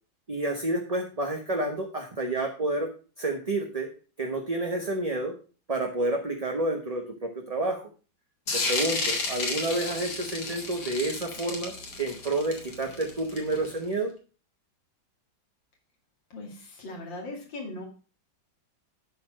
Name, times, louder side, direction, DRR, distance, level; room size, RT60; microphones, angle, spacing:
voice 1, 0.3-2.9 3.2-3.9 4.2-5.3 5.7-7.8 8.5-11.7 12.0-14.1, right 2 dB, 25° right, 2 dB, 1.0 m, -29 dB
sound 1, 8.5-13.8, left 3 dB, 60° left, 2.5 m, -32 dB
voice 2, 16.3-17.8, left 2 dB, 75° left, 0 dB, 3.1 m, -39 dB
12.0 x 4.4 x 6.1 m, 0.36 s
omnidirectional pair, 2.1 m